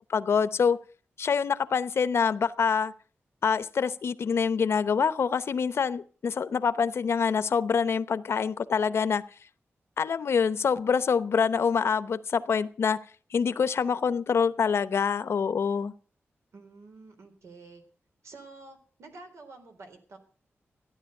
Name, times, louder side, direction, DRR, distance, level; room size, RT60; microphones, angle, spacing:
voice 1, 0.1-0.8 1.2-2.9 3.4-9.2 10.0-13.0 13.3-15.9, left 6 dB, 65° left, 15 dB, 0.8 m, -26 dB
voice 2, 16.5-17.8 18.2-20.2, right 3 dB, 85° right, 5 dB, 3.8 m, -49 dB
15.0 x 10.5 x 6.6 m, 0.41 s
wide cardioid pair, 150°, 5 cm